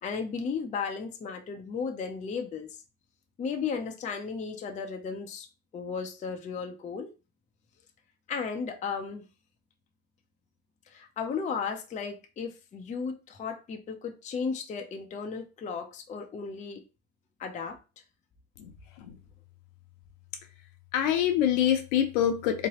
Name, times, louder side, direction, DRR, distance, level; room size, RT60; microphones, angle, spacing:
voice 1, 0.0-2.7 3.4-5.5 5.7-7.1 8.3-9.3 10.9-16.8 17.4-17.8, left 5 dB, 20° left, 0.6 m, -35 dB
voice 2, 20.9-22.7, left 10 dB, 65° left, 0.9 m, -25 dB
3.7 x 3.1 x 2.9 m
supercardioid pair, 115°, 40 cm